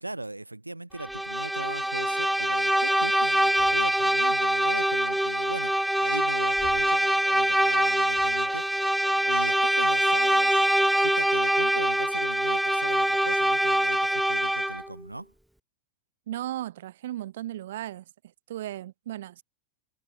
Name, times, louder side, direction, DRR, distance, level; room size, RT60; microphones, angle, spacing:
voice 1, 0.0-8.9 9.2-10.7 11.0-15.3, right 2 dB, 85° right, 2.3 m, -38 dB
Bowed string instrument, 1.0-14.9, right 1 dB, ahead, 1.4 m, -24 dB
voice 2, 16.3-18.0 18.5-19.4, right 13 dB, 55° right, 3.4 m, -35 dB
figure-of-eight pair, 90°, 0 cm